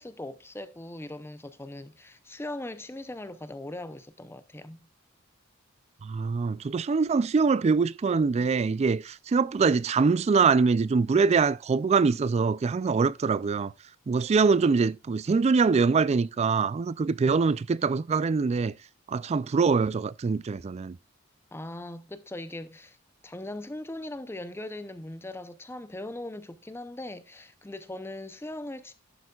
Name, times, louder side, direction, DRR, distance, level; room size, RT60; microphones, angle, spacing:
voice 1, 0.0-4.8 21.5-23.0 23.2-28.9, left 1 dB, 10° left, 0.6 m, -39 dB
voice 2, 6.0-13.7 14.1-18.7 19.1-21.0, right 5 dB, 30° right, 0.3 m, -24 dB
11.0 x 8.1 x 2.3 m
head